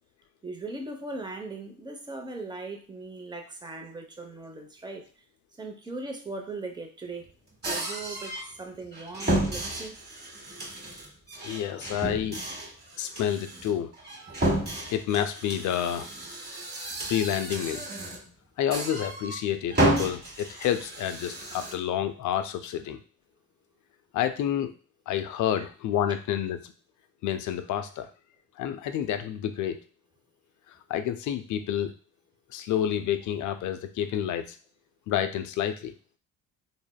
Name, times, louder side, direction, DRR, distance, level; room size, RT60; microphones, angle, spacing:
voice 1, 0.4-5.0 5.6-7.3 7.6-10.0 25.6-25.7, right 3 dB, 10° right, 3 dB, 0.6 m, -39 dB
sound 1, 7.6-8.5 8.9-18.3 18.7-19.4 19.7-21.7, right 1 dB, 30° right, 1.1 m, -31 dB
voice 2, 11.4-12.4 13.0-13.9 14.9-16.1 17.1-17.9 18.6-23.0 24.1-24.7 25.1-26.6 27.2-28.1 28.6-29.8 30.7-31.9 32.5-34.6 35.1-35.9, left 10 dB, 55° left, 9 dB, 0.4 m, -29 dB
3.3 x 2.0 x 2.2 m, 0.38 s
supercardioid pair, 70°, 36 cm